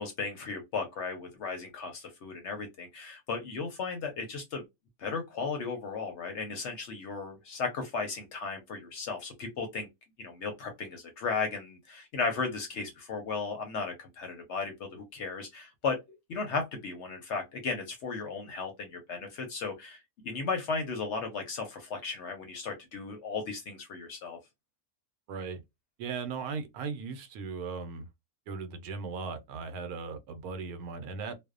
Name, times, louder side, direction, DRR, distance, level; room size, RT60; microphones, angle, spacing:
voice 1, 0.0-4.6 5.0-9.9 10.2-16.0 16.3-24.4, left 4 dB, 65° left, 0.8 m, -35 dB
voice 2, 25.3-25.6 26.0-28.1 28.5-31.3, right 5 dB, 80° right, 1.0 m, -37 dB
2.5 x 2.0 x 2.3 m
omnidirectional pair, 1.5 m